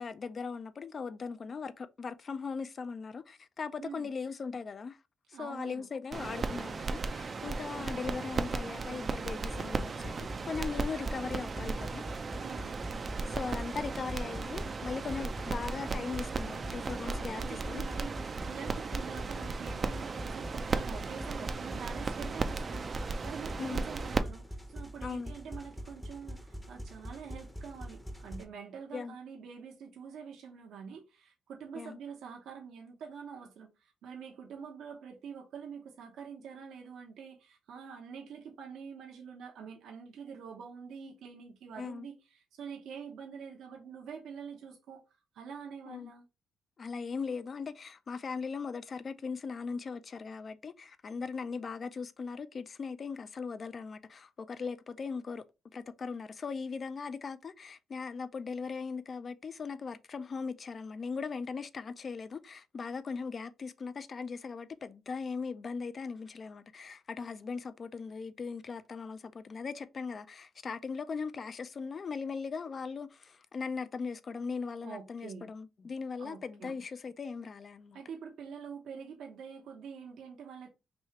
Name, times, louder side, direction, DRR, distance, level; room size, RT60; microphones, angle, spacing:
voice 1, 0.0-5.0 5.3-12.1 13.3-17.8 23.6-23.8 25.0-25.3 28.9-29.2 31.8-32.0 41.8-42.1 45.9-46.1 46.8-55.4 55.7-78.0, left 5 dB, 40° left, 0.4 m, -39 dB
voice 2, 3.8-4.1 5.3-5.9 12.3-12.7 17.3-45.0 45.3-46.2 74.8-75.4 76.2-76.7 77.9-80.7, right 6 dB, 75° right, 0.8 m, -46 dB
sound 1, 6.1-24.2, right 4 dB, 40° right, 0.4 m, -36 dB
sound 2, 9.5-28.4, equal, 5° left, 0.7 m, -44 dB
3.1 x 2.7 x 4.3 m
cardioid pair, 90°, 0 cm